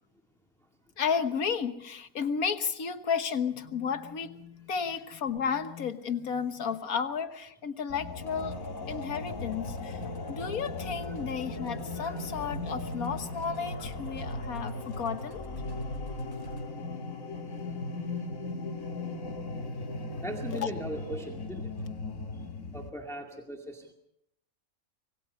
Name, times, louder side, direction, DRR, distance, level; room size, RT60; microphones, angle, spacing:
voice 1, 1.0-8.6 8.9-10.0 10.3-15.5 19.5-20.2 20.5-20.7, left 6 dB, 90° left, 9 dB, 1.8 m, -33 dB
sound 1, 7.9-22.9, left 2 dB, 70° left, 2.1 m, -37 dB
Musical instrument, 8.2-16.7, left 1 dB, 25° left, 4.2 m, -46 dB
voice 2, 20.2-21.7 22.7-23.9, equal, ahead, 2 dB, 2.2 m, -39 dB
25.5 x 22.0 x 5.5 m, 0.77 s
omnidirectional pair, 1.5 m